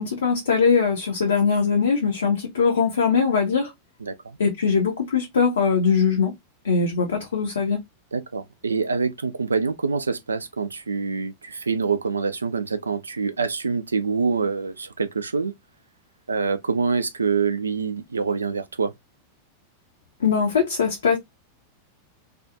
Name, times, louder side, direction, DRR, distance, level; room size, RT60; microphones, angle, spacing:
voice 1, 0.0-3.7 4.4-6.3 6.6-7.8 20.2-21.2, left 5 dB, 70° left, 0.6 m, -21 dB
voice 2, 8.1-15.5 16.3-18.9, right 5 dB, 75° right, 0.3 m, -25 dB
2.4 x 2.3 x 2.6 m
figure-of-eight pair, 90°, 0 cm